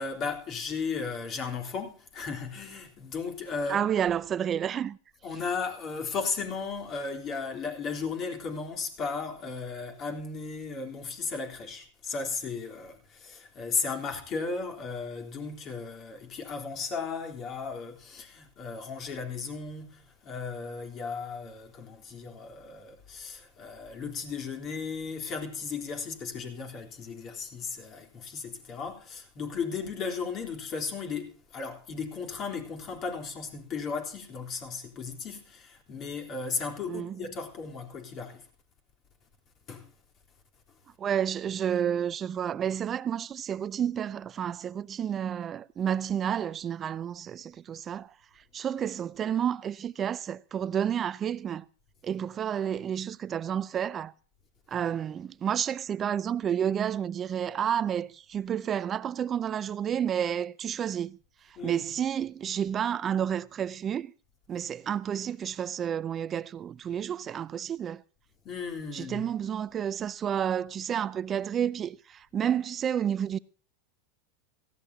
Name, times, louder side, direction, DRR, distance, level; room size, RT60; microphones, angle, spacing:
voice 1, 0.0-3.9 5.2-38.4 39.7-39.9 61.6-61.8 68.4-69.2, left 5 dB, 40° left, 3.6 m, -35 dB
voice 2, 3.7-5.0 36.9-37.3 41.0-51.7 52.0-54.1 54.7-61.2 61.4-64.1 64.5-68.0 68.9-73.4, right 9 dB, 30° right, 0.6 m, -30 dB
17.5 x 15.0 x 2.8 m
hypercardioid pair, 115°, 0 cm